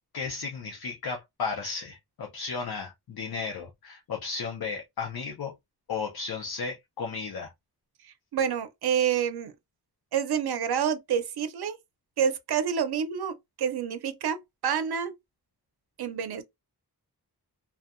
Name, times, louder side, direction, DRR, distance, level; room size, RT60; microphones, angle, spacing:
voice 1, 0.1-5.5 5.9-7.5, left 5 dB, 70° left, 0.7 m, -34 dB
voice 2, 8.0-9.5 10.1-11.8 12.2-15.1 16.0-16.4, right 8 dB, 75° right, 0.6 m, -28 dB
2.7 x 2.2 x 2.4 m
wide cardioid pair, 110°, 38 cm